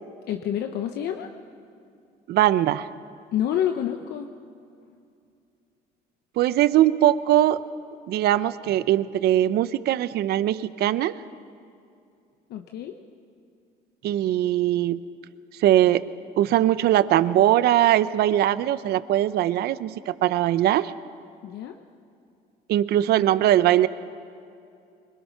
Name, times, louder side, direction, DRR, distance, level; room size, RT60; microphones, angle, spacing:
voice 1, 0.3-1.3 3.3-4.3 12.5-13.0 21.4-21.8, left 10 dB, 75° left, 5 dB, 1.0 m, -28 dB
voice 2, 2.3-2.9 6.4-7.6 8.1-11.1 14.0-15.0 15.6-16.0 16.4-20.9 22.7-23.9, right 13 dB, 70° right, 15 dB, 0.7 m, -21 dB
24.0 x 22.5 x 5.9 m, 2.5 s
cardioid pair, 110°, 17 cm